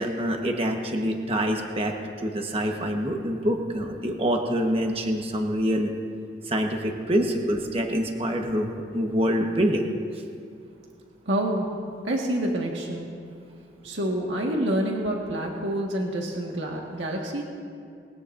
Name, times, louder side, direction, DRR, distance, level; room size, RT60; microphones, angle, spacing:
voice 1, 0.0-5.9 6.4-9.9, equal, 30° right, 2 dB, 1.3 m, -26 dB
voice 2, 11.2-11.7 12.0-13.1 13.8-17.4, right 1 dB, 85° right, -1 dB, 1.7 m, -27 dB
20.5 x 19.5 x 2.6 m, 2.3 s
head